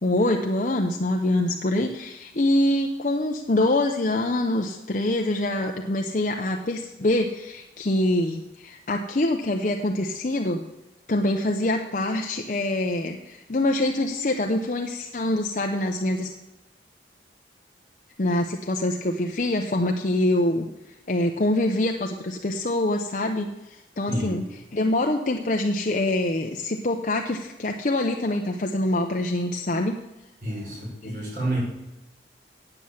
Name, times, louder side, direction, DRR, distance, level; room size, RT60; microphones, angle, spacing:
voice 1, 0.0-10.6 11.1-16.3 18.2-20.7 21.1-24.4 24.7-30.0 31.0-31.1, left 1 dB, 45° left, 2 dB, 0.7 m, -25 dB
voice 2, 24.1-24.4 30.4-31.6, right 1 dB, 50° right, -3 dB, 4.7 m, -29 dB
9.5 x 7.9 x 7.2 m, 0.98 s
head